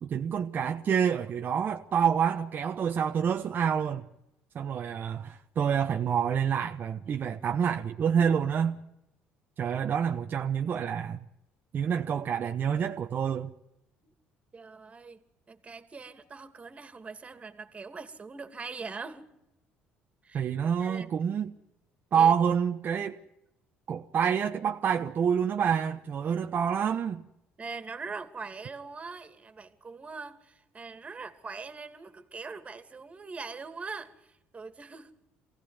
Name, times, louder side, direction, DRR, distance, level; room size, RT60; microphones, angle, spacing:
voice 1, 0.0-4.0 4.5-8.8 9.6-11.2 11.7-13.5 20.3-21.5 22.1-23.2 23.9-27.3, right 7 dB, 50° right, 1.2 m, -27 dB
voice 2, 14.5-19.2 20.2-20.4 20.8-21.1 22.1-22.3 27.6-35.1, right 4 dB, 30° right, 2.7 m, -42 dB
24.0 x 16.5 x 9.8 m
supercardioid pair, 80°, 4 cm